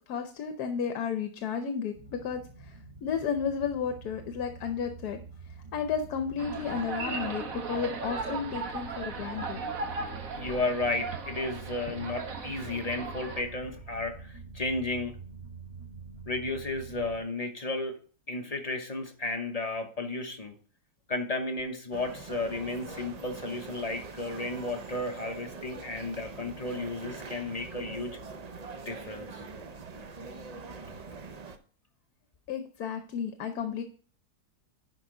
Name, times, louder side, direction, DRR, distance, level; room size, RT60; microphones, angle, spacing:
voice 1, 0.1-5.2 5.7-9.6 32.5-33.8, left 7 dB, 75° left, 7 dB, 1.3 m, -33 dB
sound 1, 1.9-17.2, right 4 dB, 25° right, 1.0 m, -47 dB
sound 2, 6.4-13.4, right 4 dB, 60° right, 1.5 m, -37 dB
voice 2, 10.3-15.1 16.3-18.0 18.3-20.6 21.1-28.2 28.8-29.4, left 2 dB, 30° left, 4 dB, 0.9 m, -33 dB
sound 3, 21.9-31.6, right 4 dB, 75° right, 0.3 m, -43 dB
10.5 x 5.0 x 3.7 m, 0.43 s
omnidirectional pair, 1.7 m